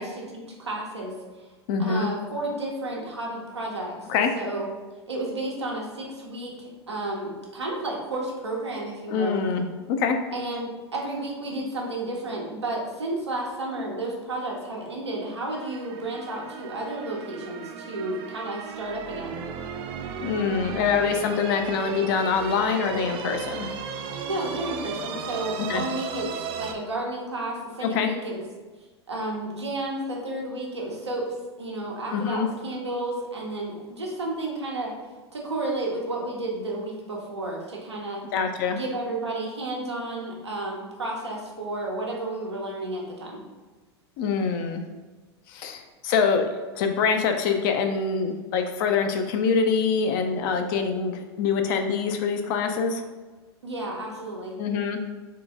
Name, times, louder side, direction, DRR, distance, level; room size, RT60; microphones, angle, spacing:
voice 1, 0.0-1.5 1.8-3.9 4.3-4.7 5.1-9.4 10.3-19.4 24.3-28.3 29.1-34.9 35.3-38.3 38.7-43.5 53.6-54.6, right 2 dB, 85° right, -2 dB, 1.0 m, -32 dB
voice 2, 1.7-2.1 4.1-4.3 9.1-10.2 20.2-23.7 25.7-25.8 27.8-28.1 32.1-32.5 38.3-38.8 44.2-44.8 45.5-46.4 46.8-53.0 54.6-55.0, left 5 dB, 50° left, 5 dB, 0.6 m, -25 dB
sound 1, 15.5-26.7, right 6 dB, 40° right, 0.5 m, -35 dB
3.8 x 3.3 x 3.6 m, 1.3 s
figure-of-eight pair, 90°, 14 cm